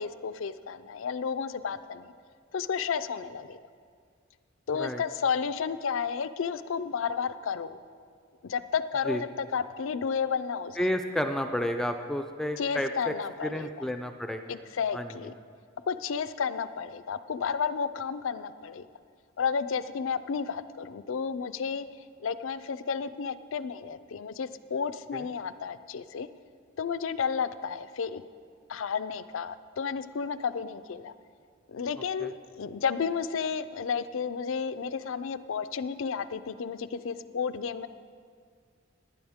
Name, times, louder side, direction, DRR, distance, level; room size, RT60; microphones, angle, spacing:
voice 1, 0.0-2.1 2.5-3.6 4.7-7.8 8.4-10.9 12.6-13.9 14.5-15.3 15.9-18.8 19.4-21.9 22.2-26.3 26.8-28.2 28.7-31.1 31.7-37.9, left 6 dB, 80° left, 13 dB, 0.5 m, -32 dB
voice 2, 10.8-13.1 13.4-14.5 14.9-15.2 25.1-25.3 32.2-32.3, left 1 dB, 5° left, 6 dB, 0.3 m, -31 dB
18.5 x 10.0 x 3.6 m, 2.1 s
head